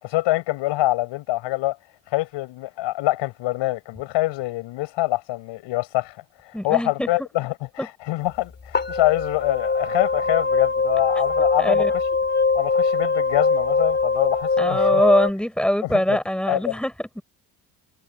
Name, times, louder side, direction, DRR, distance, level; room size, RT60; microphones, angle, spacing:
voice 1, 0.0-1.8 2.1-12.0 12.5-15.0 15.8-16.2 16.5-16.8, left 18 dB, 85° left, 6.6 m, -25 dB
voice 2, 6.5-7.1 7.8-7.9 11.6-11.9 14.6-17.2, equal, ahead, 6.2 m, -22 dB
sound 1, 8.3-8.4 8.7-15.3, left 4 dB, 25° left, 4.1 m, -22 dB
cardioid pair, 140°, 43 cm